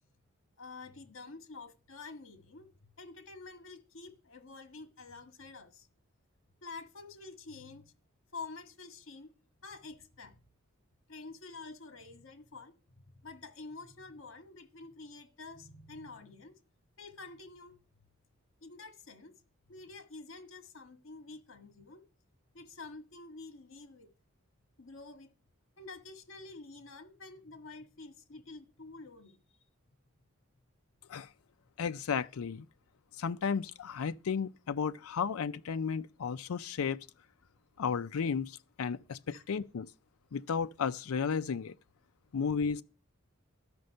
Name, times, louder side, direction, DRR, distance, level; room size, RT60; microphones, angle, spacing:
voice 1, 0.6-2.7 3.0-5.9 6.6-7.9 8.3-9.3 9.6-10.4 11.1-16.5 17.0-17.8 18.6-19.3 19.7-22.0 22.5-24.1 24.8-25.3 25.8-29.4 39.3-39.4, left 3 dB, 65° left, 1.6 m, -48 dB
voice 2, 31.8-32.7 33.2-37.1 37.8-39.9 40.3-41.7 42.3-42.8, left 6 dB, 90° left, 0.4 m, -33 dB
13.0 x 5.2 x 6.5 m
head